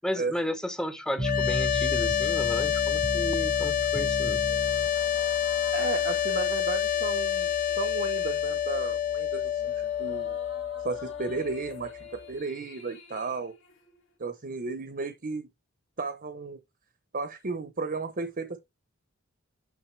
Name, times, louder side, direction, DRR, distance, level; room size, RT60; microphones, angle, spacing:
voice 1, 0.0-4.4, equal, 5° left, 0.9 m, -33 dB
sound 1, 1.2-12.3, left 10 dB, 40° left, 0.6 m, -28 dB
sound 2, 1.2-12.3, right 2 dB, 15° right, 0.4 m, -37 dB
sound 3, 4.4-14.1, left 3 dB, 60° left, 2.1 m, -51 dB
voice 2, 5.7-7.5 7.8-9.7 10.0-10.4 10.8-13.5 14.2-15.5 16.0-16.6 17.1-18.6, right 4 dB, 40° right, 0.8 m, -34 dB
7.0 x 6.1 x 3.3 m
head